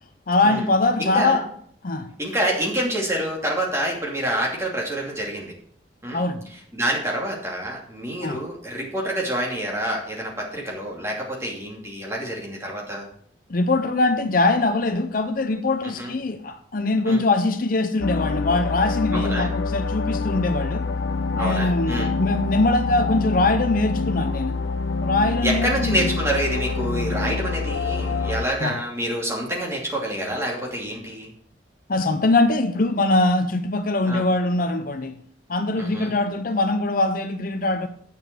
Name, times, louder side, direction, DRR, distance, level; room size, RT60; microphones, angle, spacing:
voice 1, 0.3-1.4 1.8-2.1 6.1-6.5 8.2-8.4 13.5-20.9 21.3-24.6 25.0-26.1 28.6-28.8 31.9-35.2 35.5-37.9, left 2 dB, 50° left, 0.6 m, -22 dB
voice 2, 1.0-1.4 2.2-5.5 6.0-6.2 6.7-13.0 15.8-16.1 17.1-17.2 19.1-19.5 21.4-22.1 25.4-31.3 34.1-34.2 35.8-36.1, right 1 dB, 15° right, 2.7 m, -27 dB
sound 1, 18.0-28.5, left 4 dB, 90° left, 0.6 m, -26 dB
8.6 x 6.9 x 6.2 m
head